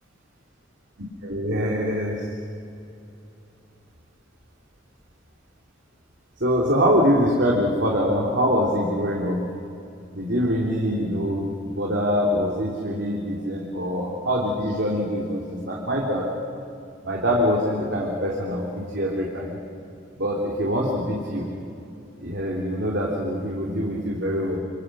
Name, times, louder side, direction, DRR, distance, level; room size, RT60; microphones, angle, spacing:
voice 1, 1.2-2.2 6.4-9.4 10.2-11.5 11.8-16.3 17.0-19.6 20.2-21.4 22.2-24.6, equal, 55° right, -3 dB, 3.4 m, -24 dB
29.5 x 25.5 x 6.4 m, 2.6 s
head